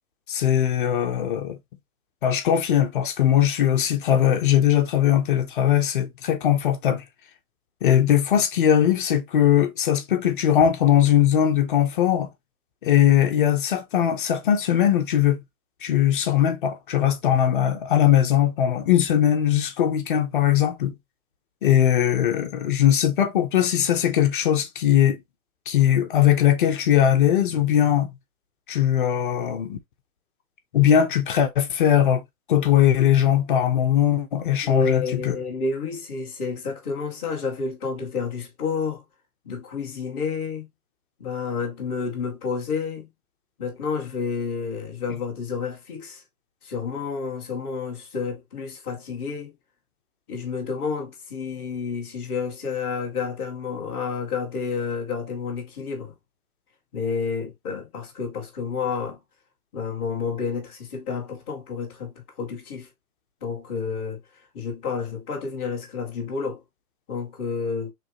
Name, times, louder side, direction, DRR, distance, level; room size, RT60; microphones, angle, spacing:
voice 1, 0.3-1.6 2.2-7.0 7.8-12.3 12.8-15.4 15.8-20.9 21.6-25.2 25.7-28.1 28.7-29.8 30.7-32.2 32.5-35.4, left 10 dB, 35° left, 0.8 m, -20 dB
voice 2, 34.6-39.0 39.4-40.7 41.2-43.1 43.6-46.2 46.6-49.5 50.3-56.1 56.9-59.2 59.7-62.9 63.4-64.2 64.5-66.6 67.1-67.9, left 5 dB, 10° left, 0.5 m, -30 dB
4.5 x 3.3 x 3.0 m
hypercardioid pair, 155°, 43 cm